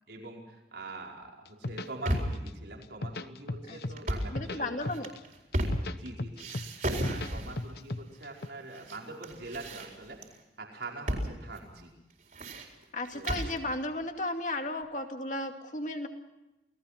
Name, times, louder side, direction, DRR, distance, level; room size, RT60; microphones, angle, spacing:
voice 1, 0.1-4.9 5.9-10.2 10.6-11.9 13.1-13.5, right 2 dB, 80° right, 0 dB, 5.1 m, -44 dB
sound 1, 1.5-2.5 2.8-4.0 4.2-5.2 5.5-7.3 7.6-8.5, left 2 dB, 65° left, 1.1 m, -36 dB
sound 2, 1.7-2.5 3.9-4.4 4.9-6.1 6.4-7.7 8.4-9.0 9.2-10.3 11.1-11.3 11.6-11.7 12.1-13.6, right 1 dB, 50° right, 4.5 m, -33 dB
voice 2, 4.3-5.1 12.9-16.1, left 2 dB, 45° left, 4 dB, 2.4 m, -34 dB
28.5 x 18.5 x 5.9 m, 0.98 s
head